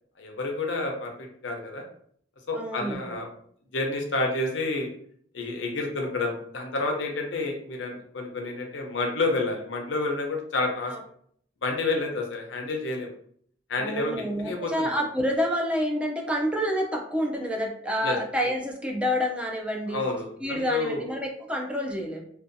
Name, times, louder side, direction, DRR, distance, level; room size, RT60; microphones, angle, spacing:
voice 1, 0.2-1.8 2.5-3.3 3.7-4.9 5.3-10.9 11.6-13.1 13.7-14.1 14.4-15.0 18.0-18.2 19.9-21.0, left 3 dB, 85° left, 2 dB, 0.6 m, -29 dB
voice 2, 2.5-3.2 10.9-11.0 13.8-20.0 20.4-22.2, equal, 5° right, 0 dB, 0.3 m, -28 dB
2.6 x 2.3 x 2.5 m, 0.63 s
head